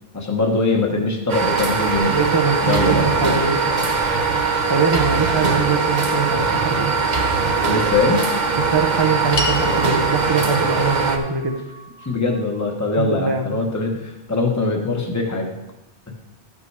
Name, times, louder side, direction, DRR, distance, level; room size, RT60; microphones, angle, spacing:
voice 1, 0.1-2.2 2.6-3.1 7.7-8.3 12.0-15.5, left 3 dB, 15° left, 1 dB, 1.1 m, -22 dB
sound 1, 1.3-11.2, right 4 dB, 50° right, 0.9 m, -21 dB
voice 2, 2.1-3.6 4.7-6.9 8.7-11.6 13.0-13.6, right 5 dB, 30° right, 3 dB, 0.6 m, -22 dB
sound 2, 9.4-13.8, left 2 dB, 65° left, 1.3 m, -33 dB
12.5 x 5.5 x 4.7 m, 0.97 s
omnidirectional pair, 1.0 m